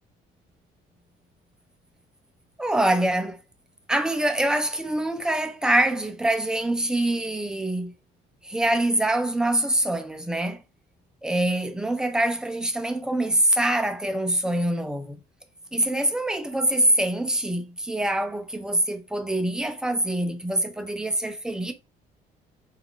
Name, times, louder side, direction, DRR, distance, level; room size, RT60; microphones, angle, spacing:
voice 1, 2.6-3.4 3.9-7.9 8.4-10.6 11.2-15.2 15.7-21.7, right 1 dB, 5° right, 0.4 m, -24 dB
3.3 x 2.4 x 2.3 m
cardioid pair, 110°, 17 cm